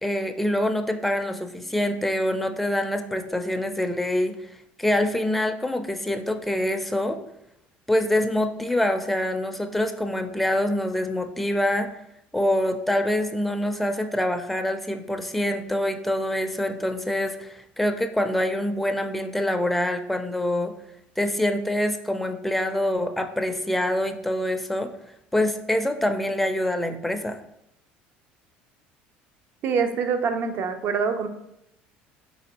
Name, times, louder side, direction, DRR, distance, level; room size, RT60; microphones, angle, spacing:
voice 1, 0.0-4.4 4.8-7.2 7.9-11.9 12.3-20.7 21.2-24.9 25.3-27.4, left 1 dB, 5° left, 6 dB, 0.4 m, -25 dB
voice 2, 29.6-31.3, right 5 dB, 55° right, 8 dB, 0.5 m, -25 dB
4.1 x 3.7 x 2.9 m, 0.80 s
supercardioid pair, 95°, 4 cm